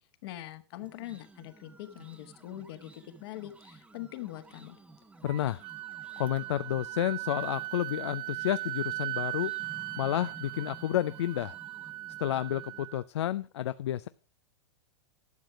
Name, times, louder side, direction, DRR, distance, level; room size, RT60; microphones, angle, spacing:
voice 1, 0.2-4.8, left 14 dB, 60° left, 10 dB, 1.5 m, -43 dB
sound 1, 0.8-12.9, right 3 dB, 10° right, 1.0 m, -54 dB
voice 2, 5.2-5.6 6.2-9.5 10.0-11.6 12.2-14.1, left 12 dB, 80° left, 13 dB, 0.5 m, -30 dB
Wind instrument woodwind instrument, 5.3-13.0, right 20 dB, 50° right, 0.7 m, -38 dB
12.0 x 6.5 x 5.9 m, 0.36 s
hypercardioid pair, 120°, 14 cm